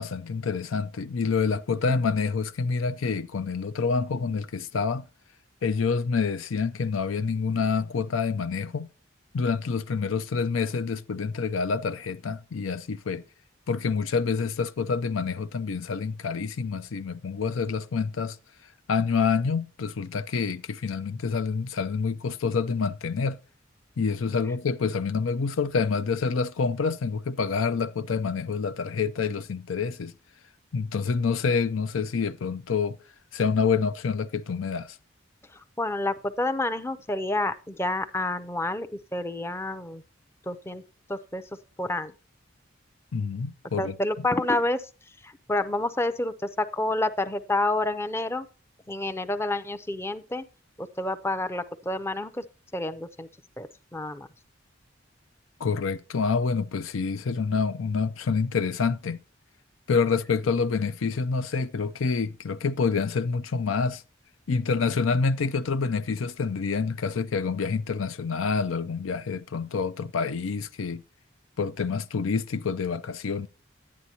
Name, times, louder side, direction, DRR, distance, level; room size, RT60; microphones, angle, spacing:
voice 1, 0.0-5.1 5.6-8.9 9.3-13.2 13.7-18.4 18.9-23.4 24.0-30.1 30.7-33.0 33.3-35.0 43.1-43.9 55.6-59.2 59.9-64.0 64.5-71.0 71.6-73.5, left 5 dB, 90° left, 0.5 m, -27 dB
voice 2, 35.5-40.0 40.5-40.8 41.1-41.4 41.8-42.1 43.8-44.9 45.2-48.5 48.9-50.5 50.8-52.4 52.7-53.3 53.6-54.3, left 2 dB, 15° left, 0.5 m, -29 dB
10.5 x 9.6 x 2.8 m
head